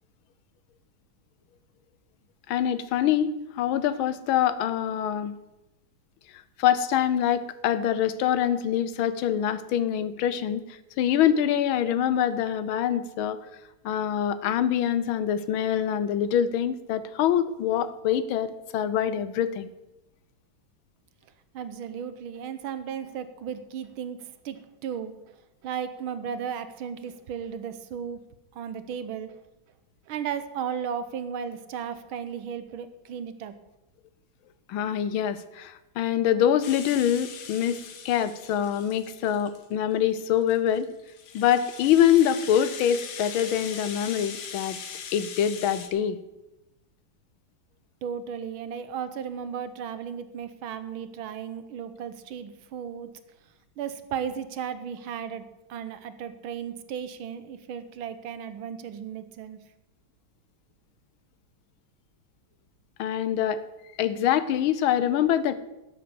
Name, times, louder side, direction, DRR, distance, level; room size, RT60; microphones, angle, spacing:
voice 1, 2.5-5.3 6.6-10.6 11.0-13.4 13.8-19.7 34.7-37.8 38.0-40.9 41.3-44.8 45.1-46.2 63.0-63.6 64.0-65.6, left 10 dB, 85° left, 14 dB, 1.6 m, -25 dB
voice 2, 21.5-25.4 25.6-28.2 28.5-29.4 30.1-33.5 48.0-53.1 53.8-59.6, right 8 dB, 90° right, 12 dB, 1.7 m, -35 dB
Rattle (instrument), 36.6-39.7 40.2-45.9, left 7 dB, 60° left, 1.5 m, -40 dB
12.0 x 7.6 x 6.9 m, 0.96 s
omnidirectional pair, 2.2 m